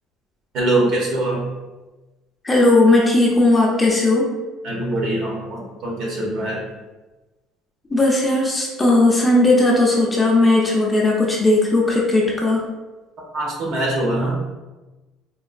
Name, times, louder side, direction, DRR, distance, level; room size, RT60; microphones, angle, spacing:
voice 1, 0.5-1.5 4.6-6.6 13.3-14.4, right 1 dB, 55° right, -2 dB, 1.0 m, -23 dB
voice 2, 2.4-4.3 7.9-12.6, left 2 dB, 15° left, -3 dB, 0.5 m, -17 dB
3.8 x 2.4 x 2.5 m, 1.1 s
cardioid pair, 145°, 0 cm